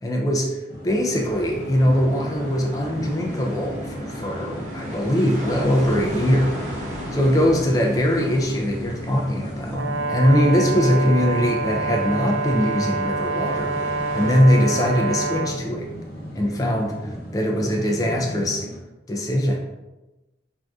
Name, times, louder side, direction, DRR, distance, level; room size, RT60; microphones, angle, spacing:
voice 1, 0.0-6.5 7.1-15.9 16.3-18.6 19.1-19.7, equal, 20° left, 0 dB, 0.3 m, -21 dB
sound 1, 0.7-18.8, equal, 55° left, 0.7 m, -36 dB
sound 2, 1.1-14.4, equal, 40° right, 0.7 m, -37 dB
Brass instrument, 9.7-15.6, right 3 dB, 80° right, 0.4 m, -26 dB
3.5 x 2.6 x 2.3 m, 1.1 s
head